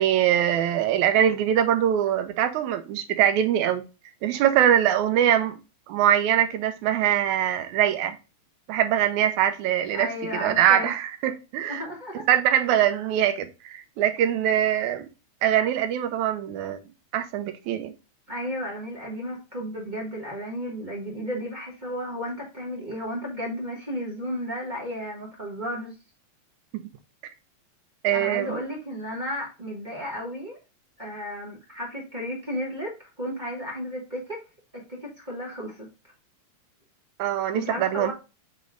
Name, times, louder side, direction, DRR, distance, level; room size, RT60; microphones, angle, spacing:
voice 1, 0.0-3.8 4.2-5.6 5.9-8.2 8.7-10.1 10.3-11.8 12.3-15.1 15.4-16.8 17.1-17.9 26.7-26.8 28.0-28.6 37.2-38.1, right 10 dB, 90° right, 2.1 m, -23 dB
voice 2, 9.9-10.9 11.7-12.3 18.3-25.9 28.1-30.6 31.0-34.4 35.0-35.9 37.5-38.1, equal, 25° right, 1.2 m, -33 dB
8.1 x 3.2 x 3.7 m
omnidirectional pair, 3.3 m